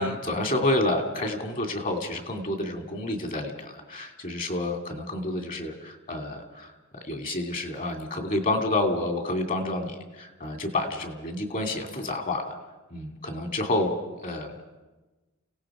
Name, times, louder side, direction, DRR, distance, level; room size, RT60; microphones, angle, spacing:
voice 1, 0.0-12.5 12.9-14.0 14.2-14.5, left 2 dB, 40° left, 4 dB, 2.6 m, -29 dB
30.0 x 17.5 x 5.0 m, 1.2 s
head